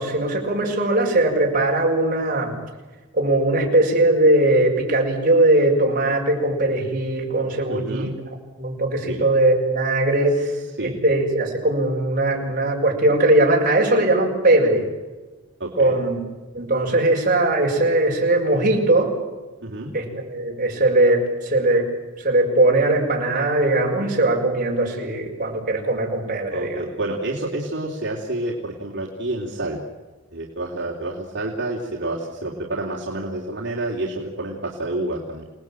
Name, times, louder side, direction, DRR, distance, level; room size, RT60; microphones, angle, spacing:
voice 1, 0.0-2.5 3.1-8.1 8.6-10.5 10.8-14.8 15.7-16.2 16.5-19.1 19.9-21.9 22.2-26.8, right 2 dB, 40° right, -2 dB, 6.8 m, -20 dB
voice 2, 7.7-8.1 9.1-9.2 10.4-10.5 10.8-11.0 15.6-16.0 19.6-19.9 26.5-29.8 30.3-35.4, right 2 dB, 55° right, -3 dB, 3.4 m, -29 dB
28.5 x 19.0 x 9.2 m, 1.3 s
head